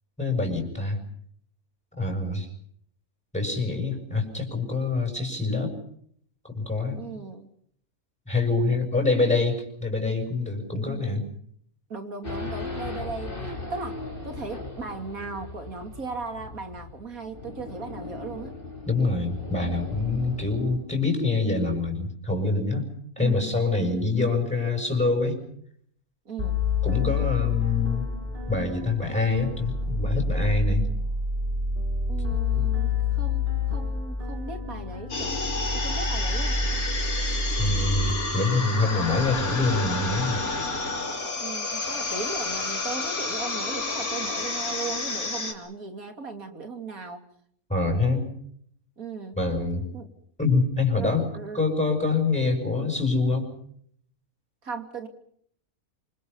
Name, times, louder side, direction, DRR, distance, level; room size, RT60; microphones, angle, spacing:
voice 1, 0.2-1.0 2.0-2.5 3.3-5.8 6.5-7.0 8.3-11.3 18.9-22.9 23.2-25.4 26.8-28.1 28.5-30.8 32.5-32.6 37.6-40.4 47.7-48.3 49.4-49.9 50.4-51.3 51.5-53.5, left 3 dB, 5° left, 2 dB, 7.1 m, -25 dB
voice 2, 7.0-7.5 11.9-13.4 13.7-18.5 23.2-23.6 26.2-26.6 32.1-35.3 35.7-36.6 41.4-47.2 49.0-49.3 49.9-50.1 50.9-51.6 54.6-55.1, right 4 dB, 70° right, 6 dB, 3.4 m, -37 dB
Race car auto racing / Idling / Accelerating revving vroom, 12.2-20.8, left 2 dB, 35° left, 3.9 m, -38 dB
sound 1, 26.4-38.1, left 4 dB, 35° right, 3.4 m, -28 dB
sound 2, 35.1-45.5, left 3 dB, 80° left, 3.5 m, -30 dB
27.0 x 26.5 x 5.6 m, 0.65 s
omnidirectional pair, 1.5 m